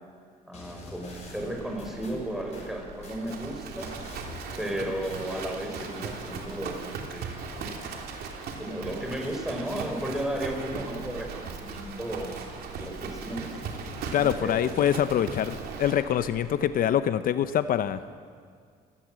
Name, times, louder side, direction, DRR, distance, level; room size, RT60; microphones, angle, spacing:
sound 1, 0.5-3.4 3.8-6.2, left 1 dB, 40° left, 7.8 m, -45 dB
voice 1, 0.5-3.9 4.6-7.8 8.6-12.3 12.8-13.7 14.1-14.6, right 1 dB, ahead, 2 dB, 5.1 m, -34 dB
Livestock farm animals working animals, 1.1-16.6, right 4 dB, 65° right, 3.3 m, -39 dB
voice 2, 14.1-18.0, left 10 dB, 60° left, 12 dB, 0.9 m, -25 dB
26.0 x 18.0 x 7.7 m, 2.1 s
cardioid pair, 110°, 17 cm